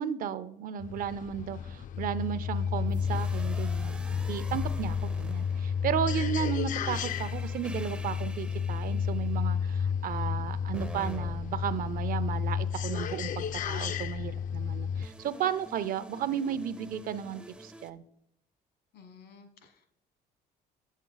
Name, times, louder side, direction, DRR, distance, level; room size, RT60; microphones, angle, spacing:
voice 1, 0.0-18.0, right 9 dB, 55° right, 14 dB, 0.5 m, -34 dB
sound 1, 0.8-15.1, left 7 dB, 50° left, 0.4 m, -32 dB
sound 2, 2.9-6.1 6.9-9.5 10.7-12.8 15.0-17.9, right 1 dB, 5° right, 0.4 m, -45 dB
voice 2, 18.9-19.9, left 5 dB, 70° left, 8 dB, 1.3 m, -54 dB
7.8 x 7.3 x 3.9 m, 0.74 s
cardioid pair, 110°, 17 cm